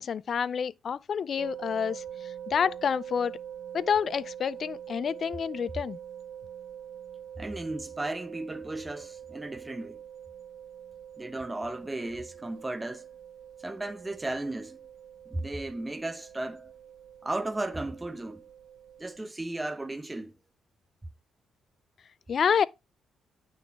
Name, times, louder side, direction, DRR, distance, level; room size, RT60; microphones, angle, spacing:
voice 1, 0.0-2.0 2.5-3.4 3.7-6.0 22.3-22.7, left 7 dB, 50° left, 0.4 m, -28 dB
sound 1, 1.4-19.2, right 9 dB, 70° right, 0.4 m, -44 dB
voice 2, 7.4-10.0 11.2-13.1 13.6-14.8 15.3-16.7 17.2-18.4 19.0-20.3, right 2 dB, 15° right, 0.7 m, -35 dB
9.0 x 3.9 x 3.5 m
cardioid pair, 90°, 0 cm